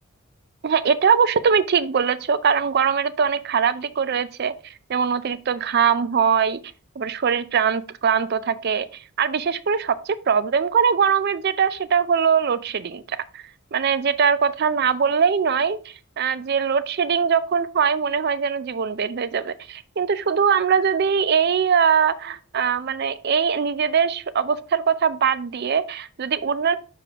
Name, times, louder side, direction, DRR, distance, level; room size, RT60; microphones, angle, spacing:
voice 1, 0.6-4.5 4.9-6.6 7.0-13.4 13.7-15.8 16.2-26.8, right 6 dB, 50° right, 15 dB, 0.4 m, -21 dB
6.8 x 5.0 x 3.5 m, 0.36 s
head